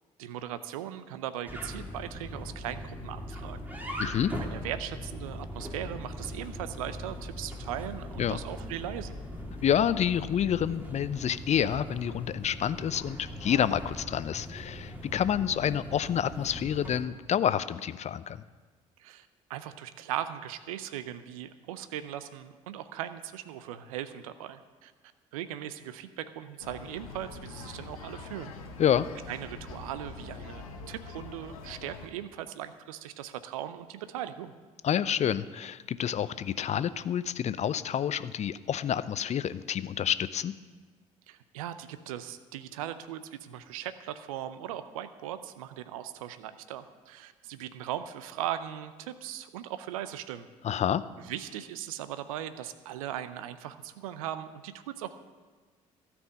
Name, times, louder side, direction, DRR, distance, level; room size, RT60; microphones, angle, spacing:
voice 1, 0.2-3.6 4.4-9.2 19.0-24.9 25.3-28.5 29.3-34.5 41.3-50.5 51.2-55.1, right 11 dB, 75° right, 12 dB, 0.6 m, -39 dB
sound 1, 1.5-17.0, left 1 dB, 10° right, 2.6 m, -40 dB
voice 2, 4.0-4.3 8.2-8.4 9.6-18.4 28.8-29.1 34.8-40.5 50.6-51.0, left 9 dB, 40° left, 16 dB, 0.6 m, -28 dB
sound 2, 26.6-32.1, left 4 dB, 80° left, 1.0 m, -44 dB
13.0 x 6.1 x 8.3 m, 1.4 s
figure-of-eight pair, 50°, 18 cm